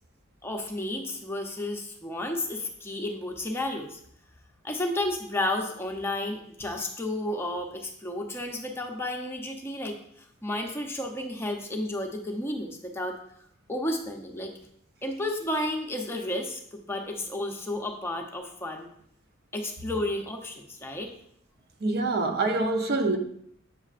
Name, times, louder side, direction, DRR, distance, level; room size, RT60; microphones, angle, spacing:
voice 1, 0.4-4.0 4.6-10.0 10.4-13.2 13.7-14.5 15.0-18.9 19.5-21.1, left 1 dB, 10° left, 0.7 m, -32 dB
voice 2, 21.8-23.2, right 2 dB, 50° right, 0.6 m, -25 dB
8.2 x 6.4 x 2.5 m
head